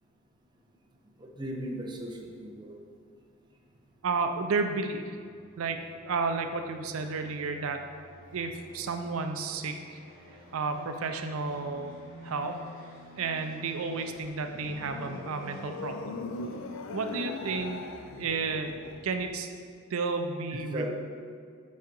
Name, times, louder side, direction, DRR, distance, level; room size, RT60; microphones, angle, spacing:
voice 1, 1.2-2.8 20.7-20.9, equal, 20° right, 0 dB, 0.7 m, -37 dB
sound 1, 3.9-17.2, equal, 45° left, 1.6 m, -52 dB
voice 2, 4.0-5.2 5.6-5.8 6.0-7.8 8.3-10.0 10.5-12.0 12.2-12.6 13.2-16.2 16.9-17.8 18.2-18.8 19.0-19.5 19.9-20.9, right 4 dB, 85° right, 6 dB, 0.5 m, -32 dB
sound 2, 14.0-19.4, left 3 dB, 65° left, 0.5 m, -40 dB
5.3 x 4.9 x 5.2 m, 2.1 s
head